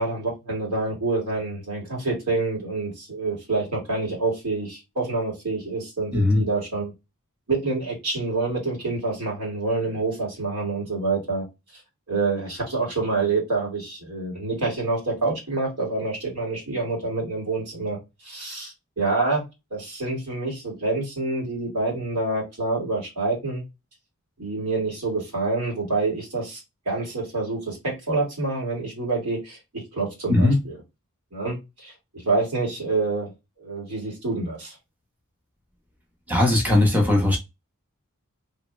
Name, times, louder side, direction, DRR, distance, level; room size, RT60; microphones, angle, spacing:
voice 1, 0.0-6.9 7.5-11.4 12.1-18.0 18.2-19.4 19.7-23.6 24.4-26.6 26.9-30.8 31.3-33.3 33.6-34.8, right 3 dB, 90° right, 1.9 m, -27 dB
voice 2, 36.3-37.4, left 2 dB, 5° right, 0.8 m, -19 dB
2.9 x 2.2 x 3.1 m
head